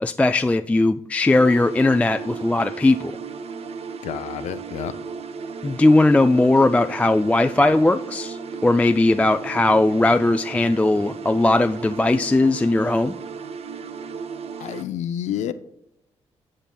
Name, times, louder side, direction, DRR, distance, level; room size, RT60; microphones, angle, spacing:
voice 1, 0.0-3.1 5.6-13.1, left 2 dB, 10° left, 8 dB, 0.3 m, -18 dB
sound 1, 1.3-14.8, right 5 dB, 60° right, 0.6 m, -35 dB
voice 2, 4.0-4.9 14.6-15.5, left 10 dB, 80° left, 11 dB, 0.4 m, -29 dB
12.0 x 7.5 x 2.2 m, 0.77 s
supercardioid pair, 60°, 12 cm